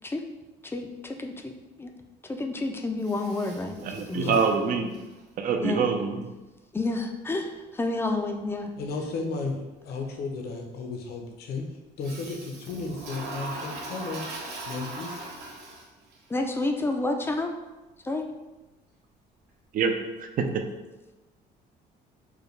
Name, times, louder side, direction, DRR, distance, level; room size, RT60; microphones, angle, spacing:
voice 1, 0.6-1.5 1.8-1.9 2.3-3.8 4.1-4.3 5.6-5.9 6.7-8.7 16.3-17.5 18.0-18.2, left 2 dB, 15° left, 4 dB, 0.4 m, -29 dB
Toilet flush, 3.0-5.2 12.0-16.1, right 2 dB, 85° right, 0.9 m, -40 dB
voice 2, 3.8-4.9 5.4-6.3 19.7-19.9 20.2-20.6, right 5 dB, 55° right, 5 dB, 0.5 m, -25 dB
voice 3, 8.8-9.6 9.8-11.7 12.0-14.2 14.7-15.1, left 4 dB, 70° left, 3 dB, 0.7 m, -33 dB
4.8 x 2.2 x 3.2 m, 1.1 s
cardioid pair, 110°, 17 cm